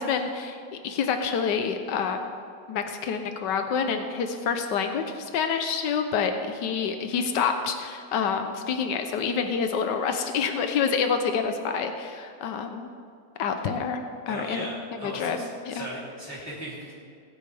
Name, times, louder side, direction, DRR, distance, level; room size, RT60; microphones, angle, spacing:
voice 1, 0.0-2.3 2.7-12.9 13.4-14.0 14.3-14.7 15.0-15.9, left 6 dB, 85° left, 6 dB, 1.5 m, -27 dB
voice 2, 14.3-16.9, equal, 10° left, -8 dB, 3.1 m, -37 dB
21.0 x 8.8 x 3.5 m, 2.4 s
omnidirectional pair, 1.8 m